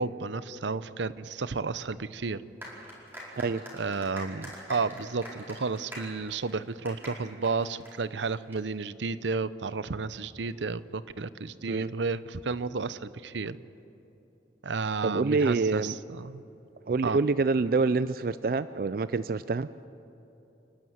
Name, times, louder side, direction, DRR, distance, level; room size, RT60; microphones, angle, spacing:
voice 1, 0.0-2.4 3.7-13.6 14.6-16.4 17.0-17.2, right 4 dB, 85° right, 16 dB, 0.7 m, -32 dB
sound 1, 2.6-8.6, equal, 10° right, 4.9 m, -44 dB
voice 2, 15.0-15.9 16.9-19.7, right 4 dB, 50° right, 15 dB, 0.4 m, -26 dB
29.0 x 12.5 x 9.5 m, 3.0 s
head